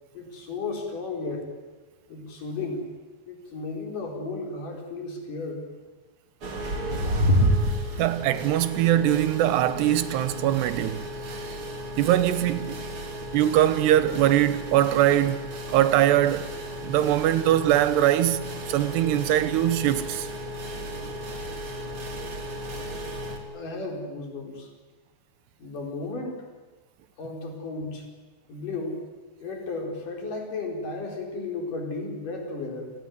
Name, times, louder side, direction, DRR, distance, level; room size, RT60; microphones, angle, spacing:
voice 1, 0.1-1.5 2.1-2.8 3.3-5.6 23.5-24.7 25.6-26.4 27.2-28.0 28.5-29.0 29.4-32.9, left 3 dB, 50° left, 5.6 m, -34 dB
sound 1, 6.4-23.4, equal, 35° right, 3.2 m, -31 dB
voice 2, 8.0-11.6 12.0-12.9 13.3-16.5 16.8-20.3, right 12 dB, 80° right, 3.1 m, -22 dB
28.5 x 18.0 x 9.4 m
omnidirectional pair, 4.9 m